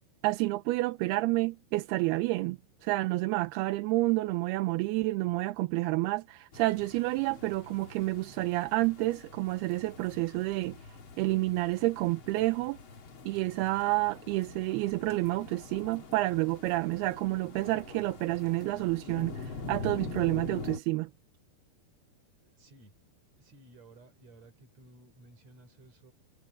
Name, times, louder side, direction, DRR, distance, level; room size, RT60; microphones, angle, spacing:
voice 1, 0.2-10.8 11.2-12.8 13.3-21.1, right 20 dB, 85° right, 2.6 m, -29 dB
sound 1, 6.5-20.8, left 4 dB, 40° left, 2.1 m, -45 dB
voice 2, 22.4-22.9 23.4-26.1, right 2 dB, 40° right, 6.2 m, -56 dB
omnidirectional pair, 4.7 m